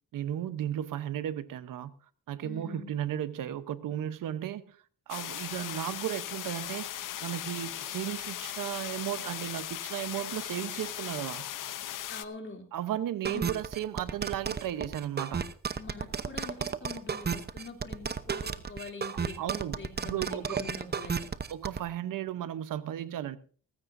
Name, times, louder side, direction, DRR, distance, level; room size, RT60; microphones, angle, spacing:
voice 1, 0.1-1.9 2.3-4.8 5.1-6.9 7.2-11.5 12.7-15.5 19.4-20.6 21.5-23.4, right 11 dB, 85° right, 1.0 m, -35 dB
voice 2, 2.4-2.9 12.1-12.6 13.2-13.5 15.7-21.3, left 4 dB, 35° left, 3.0 m, -44 dB
sound 1, 5.1-12.2, left 12 dB, 75° left, 0.8 m, -38 dB
sound 2, 13.2-21.8, right 6 dB, 30° right, 0.9 m, -33 dB
17.5 x 15.5 x 2.7 m
cardioid pair, 90°, 32 cm